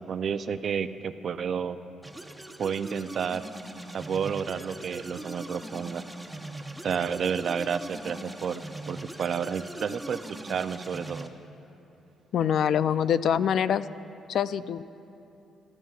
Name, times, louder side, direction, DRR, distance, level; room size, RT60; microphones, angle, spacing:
voice 1, 0.0-1.8 2.6-3.4 3.9-6.0 6.8-11.3, right 7 dB, 55° right, 11 dB, 0.5 m, -31 dB
sound 1, 2.0-11.3, right 1 dB, 10° right, 0.9 m, -41 dB
voice 2, 12.3-13.9 14.3-14.8, left 8 dB, 65° left, 15 dB, 0.4 m, -24 dB
29.5 x 13.5 x 2.4 m, 2.9 s
cardioid pair, 90°, 0 cm